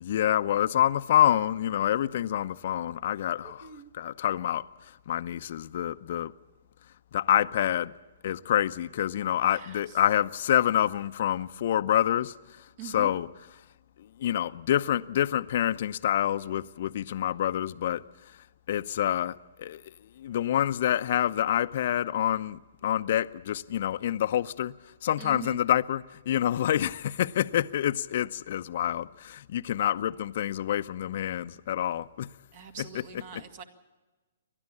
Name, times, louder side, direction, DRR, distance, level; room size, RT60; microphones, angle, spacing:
voice 1, 0.0-6.3 7.1-7.9 8.2-13.3 14.0-18.0 18.7-32.3 32.8-33.2, left 11 dB, 55° left, 0.7 m, -27 dB
voice 2, 3.4-3.9 9.5-9.8 12.8-13.1 25.2-25.6 32.5-33.6, right 9 dB, 45° right, 2.1 m, -43 dB
29.0 x 12.5 x 8.5 m
figure-of-eight pair, 125°, 0 cm